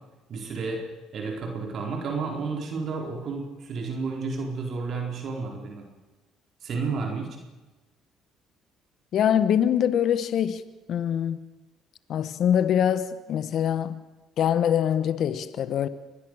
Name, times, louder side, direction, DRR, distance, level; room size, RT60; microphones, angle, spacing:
voice 1, 0.3-0.8 1.1-5.9 6.6-7.3, right 4 dB, 55° right, 4.5 m, -31 dB
voice 2, 9.1-10.6 10.9-11.4 12.1-14.0 14.4-15.9, left 9 dB, 60° left, 1.3 m, -24 dB
25.0 x 20.0 x 6.6 m
supercardioid pair, 85°, 0 cm